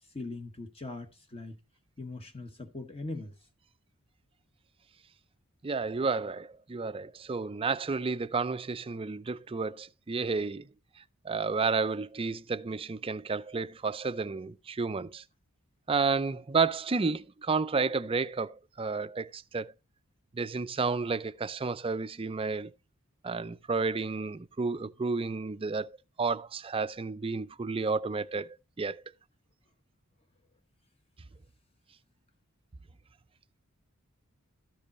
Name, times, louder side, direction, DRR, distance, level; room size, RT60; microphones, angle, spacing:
voice 1, 0.1-1.6 2.0-3.3, left 2 dB, 25° left, 1.1 m, -40 dB
voice 2, 5.6-10.7 11.2-15.2 15.9-19.7 20.3-22.7 23.2-25.9 26.2-28.5 28.8-29.0, right 4 dB, 25° right, 0.4 m, -31 dB
13.0 x 5.3 x 4.1 m
head